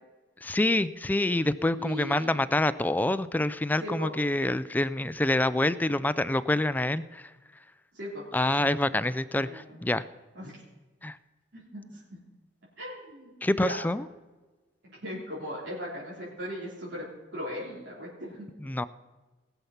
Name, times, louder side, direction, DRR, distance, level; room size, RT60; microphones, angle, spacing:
voice 1, 0.4-7.3 8.3-10.0 11.0-11.2 13.4-14.0 18.6-18.9, left 1 dB, 10° left, 14 dB, 0.4 m, -26 dB
voice 2, 1.8-2.4 3.8-4.1 7.9-8.2 8.6-8.7 9.3-9.8 10.3-10.6 11.5-12.2 12.8-13.8 15.0-17.0 17.3-18.5, equal, 90° right, -7 dB, 3.5 m, -38 dB
19.0 x 7.1 x 5.7 m, 1.2 s
head